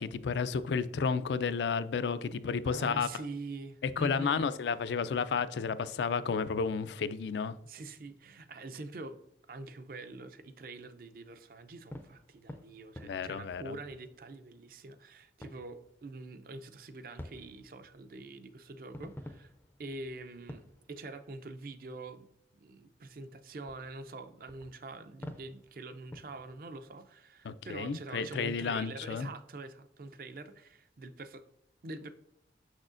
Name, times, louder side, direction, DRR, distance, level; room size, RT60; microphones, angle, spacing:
voice 1, 0.0-3.1 3.8-7.6 13.0-13.7 27.4-29.3, left 5 dB, 80° left, 0.4 m, -32 dB
voice 2, 2.7-4.5 7.6-9.2 9.5-19.5 19.8-31.4 31.8-32.1, right 2 dB, 55° right, 0.5 m, -45 dB
sound 1, 11.7-14.6 14.9-15.0 15.4-16.6 17.2-21.6 22.1-22.2 22.7-22.8 23.3-23.4 23.6-26.6, left 1 dB, 10° left, 0.4 m, -51 dB
6.3 x 6.2 x 2.5 m
head